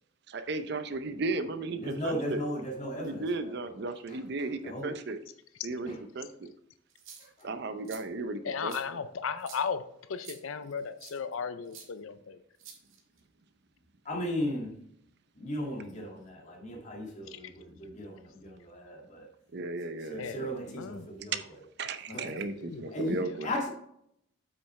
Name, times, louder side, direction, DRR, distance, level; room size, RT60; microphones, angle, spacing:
voice 1, 0.3-2.4 3.0-5.2 5.6-6.5 7.4-8.7 19.5-20.6 21.3-21.4 21.8-23.5, right 3 dB, 55° right, 10 dB, 0.6 m, -35 dB
voice 2, 1.8-3.8 4.1-4.2 4.6-5.0 5.9-6.0 7.4-7.5 14.1-14.7 15.4-19.3 20.0-21.4 22.1-22.3 22.9-23.7, left 1 dB, 35° left, -1 dB, 2.0 m, -36 dB
sound 1, 6.9-7.4 7.8-8.0 8.7-8.8 9.4-9.6 10.2-10.4 11.0-11.2 11.7-11.9 12.6-13.2, right 7 dB, 85° right, 1.6 m, -48 dB
voice 3, 8.4-12.4 17.3-17.4 20.2-21.1 22.1-23.0 23.2-23.5, left 6 dB, 80° left, 11 dB, 0.5 m, -36 dB
8.2 x 6.1 x 3.2 m, 0.73 s
head